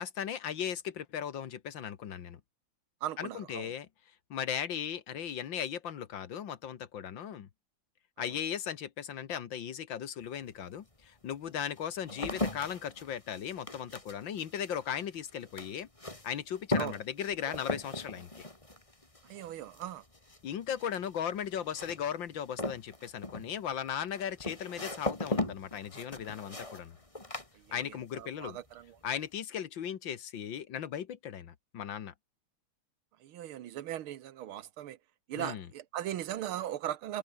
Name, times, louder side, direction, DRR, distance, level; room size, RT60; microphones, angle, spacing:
voice 1, 0.0-2.4 3.2-3.9 4.3-7.5 8.2-15.9 16.2-18.5 20.4-27.0 27.7-28.6 29.0-32.1 35.4-35.7, left 9 dB, 70° left, 2.0 m, -37 dB
voice 2, 3.0-3.7 8.2-8.3 16.7-17.0 19.3-20.0 27.5-29.0 33.2-35.0 35.3-37.2, right 12 dB, 85° right, 1.9 m, -39 dB
sound 1, 10.2-10.3 11.0-28.2 28.5-29.1, left 2 dB, 15° left, 2.8 m, -39 dB
omnidirectional pair, 2.3 m